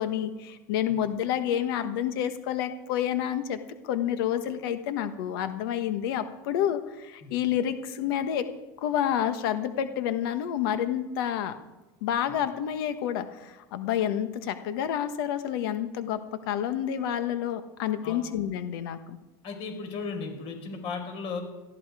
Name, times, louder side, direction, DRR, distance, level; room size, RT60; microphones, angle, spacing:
voice 1, 0.0-3.6 3.8-8.4 8.8-11.6 12.0-16.2 16.5-19.2, left 10 dB, 80° left, 9 dB, 1.3 m, -29 dB
voice 2, 19.4-21.4, left 4 dB, 50° left, 4 dB, 4.9 m, -35 dB
18.5 x 13.5 x 4.9 m, 1.1 s
supercardioid pair, 130°, 12 cm